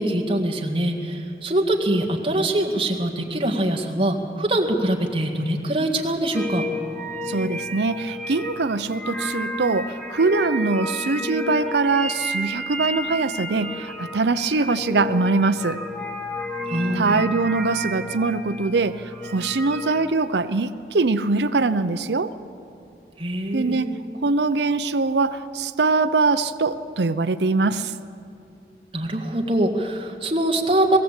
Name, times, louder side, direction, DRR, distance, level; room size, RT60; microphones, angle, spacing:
voice 1, 0.0-6.7 16.7-17.2 23.2-24.0 28.9-31.0, right 1 dB, 30° right, 1 dB, 1.8 m, -23 dB
sound 1, 6.3-20.2, left 1 dB, 5° left, 1.4 m, -32 dB
voice 2, 7.3-15.8 16.9-22.4 23.5-23.9 24.2-27.9, right 3 dB, 75° right, 11 dB, 0.7 m, -22 dB
21.5 x 16.0 x 8.3 m, 2.5 s
head